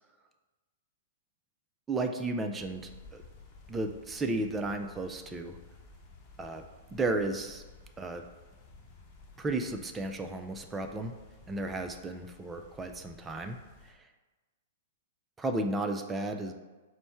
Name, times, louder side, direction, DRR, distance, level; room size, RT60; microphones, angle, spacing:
voice 1, 1.9-3.2 3.7-5.6 6.4-6.6 6.9-7.6 8.0-8.2 9.4-11.2 11.5-13.6 13.9-14.0 15.4-16.5, right 2 dB, 15° right, 6 dB, 0.4 m, -33 dB
sound 1, 2.6-13.9, left 3 dB, 25° left, 0.9 m, -54 dB
4.4 x 2.1 x 4.3 m, 1.2 s
hypercardioid pair, 130°, 0 cm